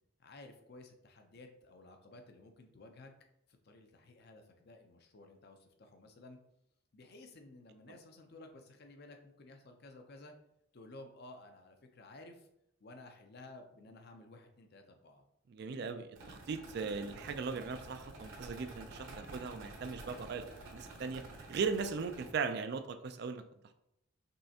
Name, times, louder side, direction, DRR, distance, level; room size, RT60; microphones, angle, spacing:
voice 1, 0.2-3.1 3.5-6.4 6.9-10.3 10.7-12.5 12.8-15.2, left 2 dB, 45° left, 5 dB, 0.5 m, -54 dB
voice 2, 15.5-21.2 21.5-23.4, right 5 dB, 50° right, 9 dB, 0.3 m, -38 dB
sound 1, 16.2-22.3, right 2 dB, 65° right, 1.0 m, -50 dB
5.4 x 3.3 x 2.8 m, 0.80 s
head